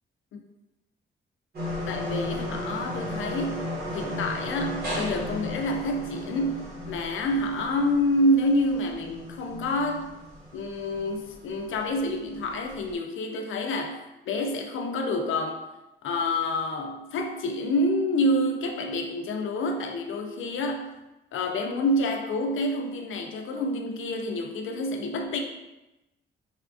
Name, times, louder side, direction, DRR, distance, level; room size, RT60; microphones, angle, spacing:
sound 1, 1.5-12.9, left 1 dB, 50° right, 1.1 m, -35 dB
voice 1, 1.9-3.7 3.9-10.2 10.5-14.0 14.3-15.6 16.0-20.9 21.3-25.4, left 1 dB, 75° left, 4 dB, 0.5 m, -28 dB
4.2 x 2.3 x 2.4 m, 0.96 s
wide cardioid pair, 170°, 21 cm